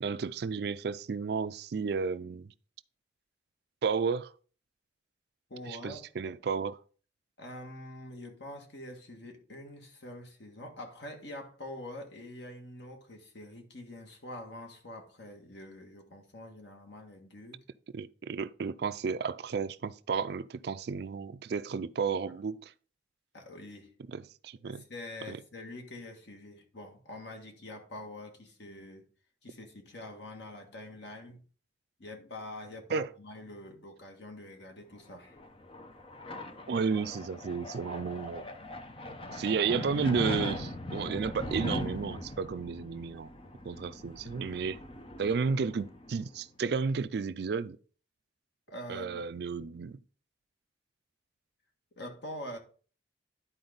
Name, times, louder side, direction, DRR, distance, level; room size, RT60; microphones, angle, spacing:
voice 1, 0.0-2.5 3.8-4.3 5.7-6.8 17.9-22.7 24.1-24.8 25.3-25.4 32.9-33.1 36.7-38.5 39.3-43.3 43.6-44.8 45.2-47.8 48.9-50.0, right 5 dB, 60° right, 0.4 m, -32 dB
voice 2, 5.5-6.0 7.4-17.6 23.3-23.9 24.6-29.0 29.4-31.4 32.0-35.4 48.7-49.3 52.0-52.6, left 1 dB, 65° left, 1.7 m, -45 dB
sound 1, 35.1-46.4, left 1 dB, 30° left, 0.7 m, -40 dB
11.0 x 4.3 x 3.9 m
head